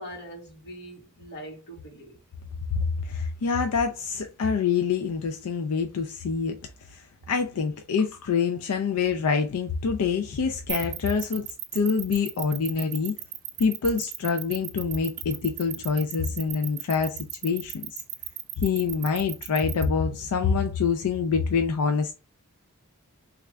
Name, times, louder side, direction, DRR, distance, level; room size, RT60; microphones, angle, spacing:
voice 1, 0.0-2.2, equal, 50° left, 1.5 m, -42 dB
voice 2, 2.8-6.6 6.9-13.1 13.6-18.0 18.6-22.1, left 5 dB, 85° left, 0.4 m, -26 dB
sound 1, 10.7-19.8, right 15 dB, 65° right, 0.5 m, -35 dB
3.4 x 2.4 x 3.2 m
head